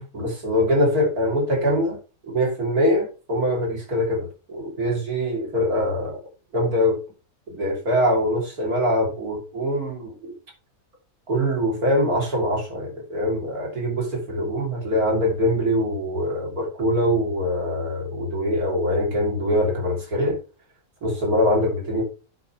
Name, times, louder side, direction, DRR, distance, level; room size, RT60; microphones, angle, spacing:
voice 1, 0.0-2.0 2.2-6.2 6.5-7.0 7.5-10.3 11.3-20.4 21.0-22.0, equal, 90° right, 3.8 m, -23 dB
8.9 x 5.8 x 4.6 m
omnidirectional pair, 1.5 m